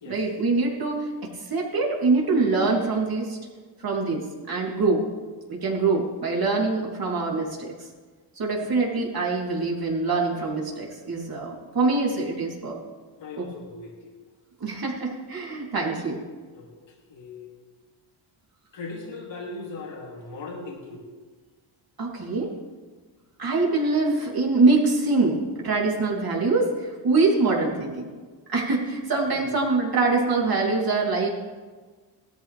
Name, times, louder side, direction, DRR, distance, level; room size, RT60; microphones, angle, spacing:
voice 1, 0.1-3.4 3.8-5.0 5.5-7.7 8.4-12.8 13.4-13.5 14.6-16.2 22.0-22.5 23.4-28.1 28.5-31.3, right 3 dB, 50° right, -2 dB, 3.6 m, -24 dB
voice 2, 13.2-14.1 16.5-16.7 17.1-17.5 18.7-21.0 29.3-29.4, left 3 dB, 70° left, -2 dB, 3.3 m, -38 dB
18.0 x 13.5 x 3.5 m, 1.4 s
cardioid pair, 85°, 46 cm